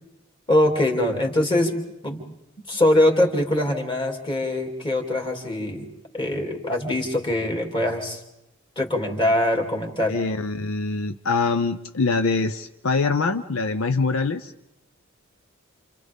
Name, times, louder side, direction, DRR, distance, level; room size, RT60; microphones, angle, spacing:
voice 1, 0.5-1.8 2.0-2.2 2.7-5.9 6.1-8.2 8.8-10.2, left 1 dB, 25° left, 2 dB, 2.7 m, -22 dB
voice 2, 10.1-14.5, left 4 dB, 70° left, 9 dB, 0.6 m, -24 dB
29.0 x 28.5 x 3.6 m, 0.90 s
head